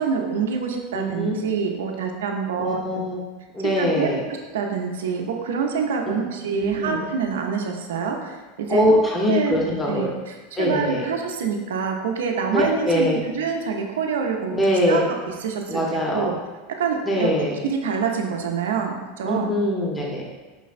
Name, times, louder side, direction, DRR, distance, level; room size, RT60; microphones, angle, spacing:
voice 1, 0.0-3.0 3.6-4.1 4.5-8.8 9.3-16.4 16.8-17.3 17.6-19.6, right 6 dB, 85° right, 2 dB, 0.5 m, -26 dB
voice 2, 0.9-1.3 2.6-3.2 3.5-4.2 6.1-6.2 6.5-7.0 8.7-10.1 10.6-11.0 12.5-13.2 14.5-15.0 15.7-16.3 17.1-17.6 19.2-20.2, equal, 15° left, -2 dB, 0.7 m, -22 dB
5.2 x 3.1 x 2.5 m, 1.2 s
supercardioid pair, 115°, 0 cm